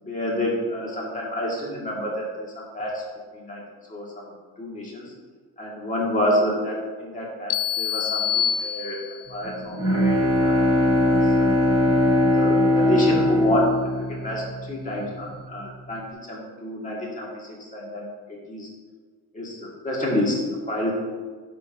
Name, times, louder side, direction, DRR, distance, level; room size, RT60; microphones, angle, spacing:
voice 1, 0.0-3.0 3.3-3.6 3.9-4.3 4.6-5.1 5.6-9.0 9.3-10.2 10.4-10.6 11.0-11.6 12.3-18.7 19.3-20.9, left 1 dB, 20° left, -3 dB, 1.7 m, -28 dB
sound 1, 7.5-9.4, left 9 dB, 80° left, 0.6 m, -26 dB
Bowed string instrument, 9.4-14.9, left 1 dB, 15° right, 1.7 m, -20 dB
12.5 x 6.3 x 2.5 m, 1.5 s
cardioid pair, 165°, 40 cm